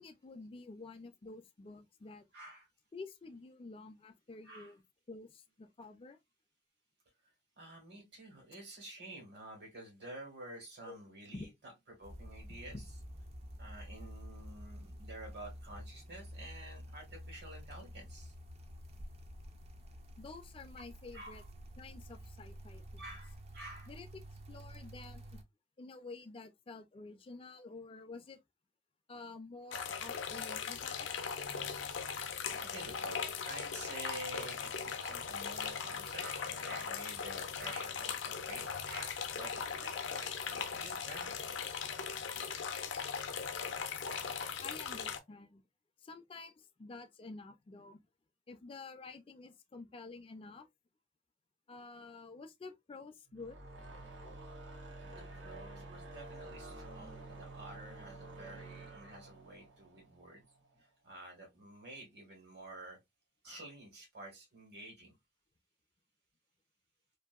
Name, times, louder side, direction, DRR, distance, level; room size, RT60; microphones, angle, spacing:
voice 1, 0.0-2.3 2.9-4.8 5.1-6.2 10.9-11.0 11.3-11.5 12.7-12.8 20.2-21.4 21.8-23.0 23.9-24.2 24.5-25.3 25.8-28.4 29.1-31.4 44.6-45.6 46.0-48.0 48.5-50.7 51.7-53.6, left 3 dB, 30° left, 0.4 m, -50 dB
voice 2, 2.3-2.7 4.4-4.7 7.6-11.5 12.0-12.7 13.6-18.3 21.1-21.4 23.0-23.9 32.1-41.6 55.0-60.4 61.0-63.0 63.4-65.1, right 1 dB, 65° right, 1.4 m, -50 dB
sound 1, 12.0-25.4, equal, 35° right, 0.4 m, -50 dB
sound 2, 29.7-45.2, left 6 dB, 85° left, 0.5 m, -39 dB
sound 3, 53.3-60.7, right 2 dB, 85° right, 0.9 m, -50 dB
2.6 x 2.5 x 2.3 m
head